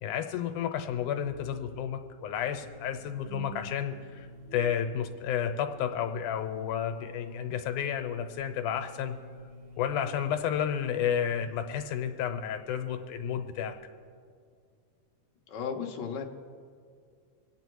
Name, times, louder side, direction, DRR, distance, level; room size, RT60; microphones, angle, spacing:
voice 1, 0.0-9.2 9.8-13.8, left 9 dB, 80° left, 6 dB, 2.3 m, -31 dB
sound 1, 1.3-10.4, right 6 dB, 75° right, 2.8 m, -53 dB
sound 2, 2.6-13.8, left 1 dB, 5° left, 1.6 m, -50 dB
voice 2, 15.5-16.2, left 6 dB, 55° left, 0 dB, 1.2 m, -34 dB
25.5 x 9.1 x 4.7 m, 2.1 s
omnidirectional pair, 3.7 m